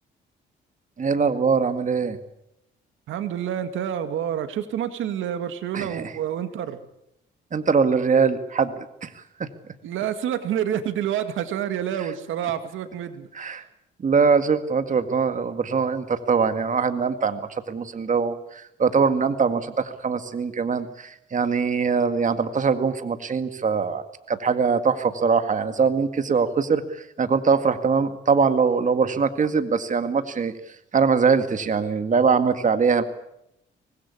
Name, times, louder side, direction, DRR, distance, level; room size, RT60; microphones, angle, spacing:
voice 1, 1.0-2.2 5.7-6.1 7.5-8.7 9.0-9.5 13.3-13.7 14.0-30.5 30.9-33.0, right 5 dB, 40° right, 9 dB, 2.0 m, -22 dB
voice 2, 3.1-6.8 9.8-13.3, right 10 dB, 85° right, 9 dB, 2.2 m, -28 dB
24.5 x 20.0 x 8.6 m, 0.81 s
cardioid pair, 90°, 20 cm